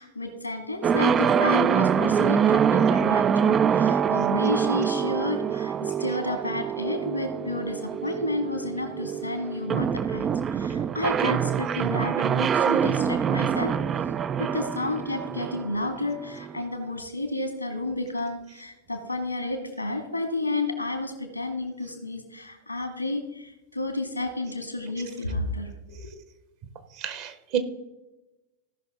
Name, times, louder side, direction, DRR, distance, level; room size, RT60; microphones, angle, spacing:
voice 1, 0.0-13.8 14.4-26.0, left 2 dB, 90° left, 5 dB, 1.8 m, -31 dB
sound 1, 0.8-16.6, right 7 dB, 25° right, 0.3 m, -25 dB
voice 2, 27.0-27.6, right 10 dB, 45° right, 10 dB, 1.2 m, -29 dB
16.0 x 5.8 x 3.7 m, 1.0 s
figure-of-eight pair, 90°, 0 cm